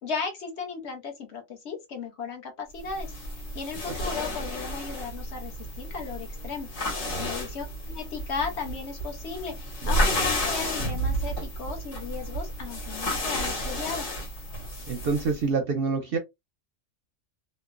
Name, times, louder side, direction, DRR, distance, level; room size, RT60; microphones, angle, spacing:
voice 1, 0.0-3.1 3.5-6.7 7.0-9.5 9.9-14.1, left 5 dB, 60° left, 1.0 m, -35 dB
sound 1, 2.8-15.4, equal, 80° left, 1.6 m, -31 dB
voice 2, 9.8-10.3 14.9-16.2, right 4 dB, 60° right, 0.6 m, -28 dB
3.0 x 2.1 x 2.4 m
omnidirectional pair, 1.3 m